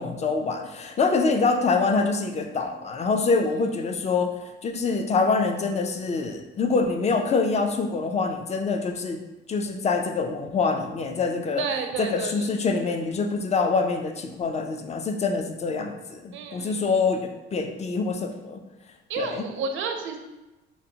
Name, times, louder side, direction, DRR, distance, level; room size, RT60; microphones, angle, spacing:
voice 1, 0.0-9.2 9.5-11.6 12.0-18.6 19.2-19.5, left 4 dB, 35° left, 5 dB, 0.4 m, -25 dB
voice 2, 11.6-12.5 16.3-16.9 19.1-20.2, right 5 dB, 80° right, 4 dB, 0.5 m, -31 dB
3.9 x 2.1 x 2.7 m, 1.0 s
cardioid pair, 90°, 20 cm